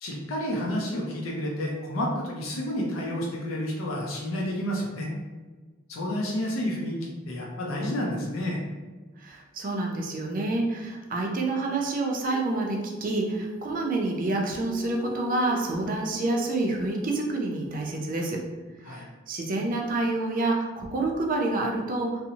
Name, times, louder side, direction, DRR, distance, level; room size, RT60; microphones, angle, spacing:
voice 1, 0.0-5.1 5.9-8.6 18.8-19.0, left 1 dB, 90° left, -2 dB, 0.5 m, -30 dB
voice 2, 9.2-18.4 18.9-22.2, right 2 dB, 45° right, 1 dB, 0.4 m, -28 dB
Female singing, 12.3-18.0, right 1 dB, 25° left, 0.6 m, -43 dB
2.7 x 2.0 x 2.7 m, 1.3 s
head